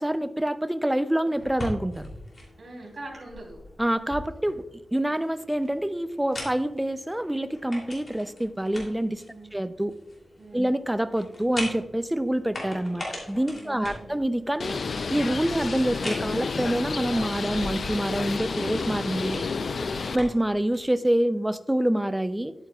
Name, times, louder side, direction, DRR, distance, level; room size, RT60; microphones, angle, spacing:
voice 1, 0.0-2.1 3.8-4.6 4.9-9.2 9.5-9.9 10.5-14.8 15.1-19.4 20.1-22.5, right 1 dB, 10° right, 11 dB, 0.4 m, -26 dB
sound 1, 1.3-20.9, left 1 dB, 40° left, 2.8 m, -42 dB
voice 2, 2.6-3.6 9.3-9.5 10.4-10.7 13.6-14.1 19.8-20.0, right 2 dB, 45° right, -3 dB, 3.1 m, -43 dB
Bird, 14.6-20.2, left 4 dB, 60° left, 0.4 m, -30 dB
10.5 x 8.8 x 2.3 m, 0.97 s
wide cardioid pair, 105°, 0 cm